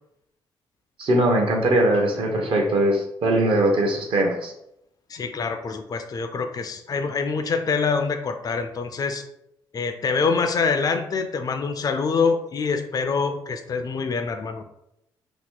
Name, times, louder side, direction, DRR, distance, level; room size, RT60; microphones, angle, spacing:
voice 1, 1.0-4.5, right 1 dB, 55° right, 2 dB, 0.9 m, -21 dB
voice 2, 5.1-9.2 9.7-14.6, left 5 dB, 35° left, 7 dB, 0.4 m, -25 dB
2.9 x 2.1 x 3.7 m, 0.82 s
hypercardioid pair, 45°, 11 cm